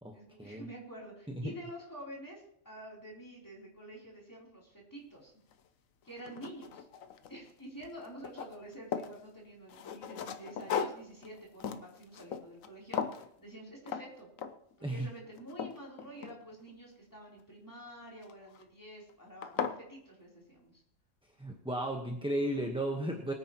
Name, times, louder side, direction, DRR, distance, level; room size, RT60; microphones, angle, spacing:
voice 1, 0.1-5.3 6.0-6.9 7.3-14.3 14.9-20.7, right 1 dB, 15° left, -3 dB, 3.6 m, -48 dB
sound 1, 5.5-5.6 6.1-7.5 7.8-9.2 9.7-12.7 12.9-13.3 13.9-14.1 14.4-14.7 15.2-16.7 18.2-18.6 19.1-19.2 19.4-19.8, left 7 dB, 90° left, 1.2 m, -38 dB
voice 2, 21.4-23.3, right 1 dB, 5° right, 2 dB, 1.0 m, -34 dB
22.5 x 9.8 x 3.0 m, 0.71 s
omnidirectional pair, 1.3 m